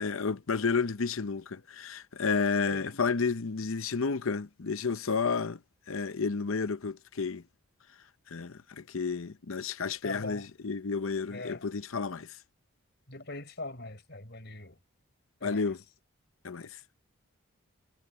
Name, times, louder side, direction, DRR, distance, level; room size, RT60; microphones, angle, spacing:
voice 1, 0.0-5.6 5.9-7.4 8.3-12.4 15.4-15.8 16.4-16.8, left 5 dB, 70° left, 0.7 m, -31 dB
voice 2, 10.0-10.4 11.3-11.6 13.1-14.8 15.4-15.6, left 2 dB, 50° left, 4.7 m, -41 dB
head